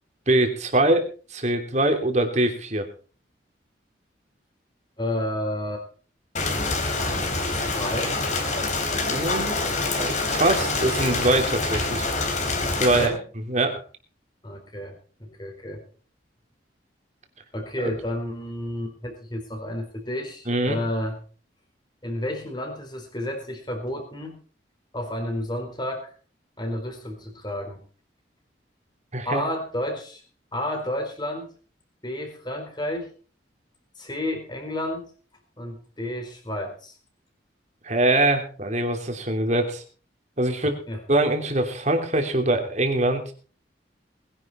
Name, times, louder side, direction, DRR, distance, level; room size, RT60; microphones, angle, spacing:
voice 1, 0.3-1.0 1.3-2.9 9.0-9.6 10.0-12.1 12.8-13.1 13.5-13.8 17.8-17.9 20.5-20.8 29.1-29.4 37.8-39.8 40.4-40.8 41.1-43.2, right 1 dB, 40° right, 5 dB, 3.0 m, -23 dB
voice 2, 5.0-5.9 7.5-8.2 12.9-13.2 14.4-15.8 17.5-21.2 22.0-24.4 24.9-26.1 26.6-27.8 29.2-30.2 30.5-31.5 32.0-33.1 34.0-35.1 35.6-36.9 40.9-41.0, left 1 dB, 25° left, 4 dB, 4.4 m, -31 dB
Rain, 6.4-13.1, left 3 dB, 40° left, 3.7 m, -26 dB
20.5 x 11.0 x 4.4 m, 0.39 s
head